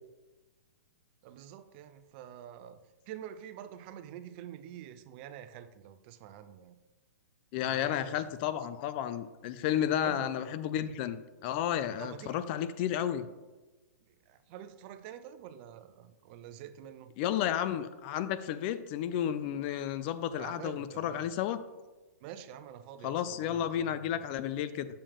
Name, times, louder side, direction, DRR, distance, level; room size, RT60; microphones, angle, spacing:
voice 1, 1.2-2.8 3.1-6.8 7.7-8.2 10.0-10.3 12.0-12.4 14.3-17.1 20.4-21.3 22.2-24.2, right 10 dB, 40° right, 11 dB, 0.5 m, -47 dB
voice 2, 7.5-13.3 17.2-21.6 23.0-24.9, left 10 dB, 35° left, 13 dB, 0.4 m, -32 dB
7.0 x 5.2 x 3.5 m, 1.2 s
hypercardioid pair, 140°, 9 cm